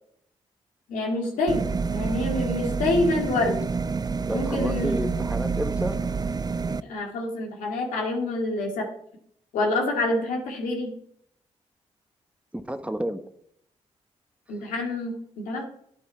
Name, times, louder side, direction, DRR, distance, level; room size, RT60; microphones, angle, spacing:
voice 1, 0.9-3.6 4.3-5.0 6.8-8.9 9.5-10.9 14.5-15.6, left 2 dB, 85° left, 0 dB, 2.0 m, -27 dB
sound 1, 1.5-6.8, right 4 dB, 30° right, 0.5 m, -28 dB
voice 2, 4.3-6.0 12.5-13.2, right 1 dB, 10° right, 8 dB, 1.2 m, -30 dB
9.4 x 8.1 x 4.6 m, 0.69 s
supercardioid pair, 45°, 13 cm